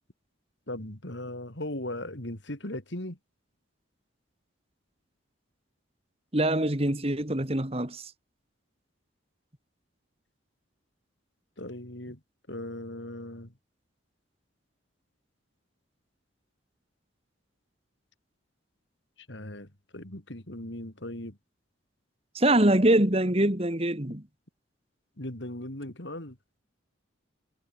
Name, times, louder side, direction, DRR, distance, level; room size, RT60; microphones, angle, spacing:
voice 1, 0.7-3.2 11.6-12.2 12.5-13.5 19.3-19.7 19.9-21.4 25.2-26.4, left 1 dB, 65° left, 3.8 m, -38 dB
voice 2, 6.3-8.0 22.3-24.2, right 1 dB, 30° right, 2.2 m, -24 dB
head